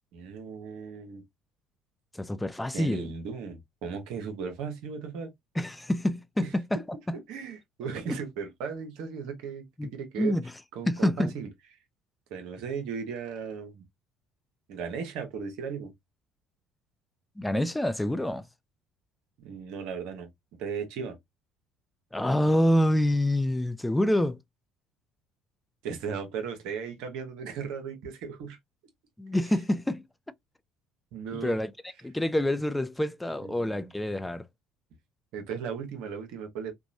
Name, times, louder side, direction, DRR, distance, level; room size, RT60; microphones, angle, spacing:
voice 1, 0.1-1.2 2.7-5.3 6.4-6.5 7.1-9.7 9.9-10.3 10.7-11.5 12.3-13.8 14.7-15.9 19.4-20.3 20.6-21.2 25.8-28.6 29.5-29.6 31.1-31.6 33.4-33.9 35.3-36.7, right 6 dB, 70° right, 0.8 m, -36 dB
voice 2, 2.1-3.1 5.6-7.2 8.1-8.2 9.8-9.9 10.2-10.4 10.9-11.4 17.4-18.5 22.1-24.4 29.2-30.0 31.3-31.7 32.0-34.4, left 1 dB, 10° left, 0.4 m, -27 dB
2.9 x 2.2 x 2.5 m
hypercardioid pair, 60°, 0 cm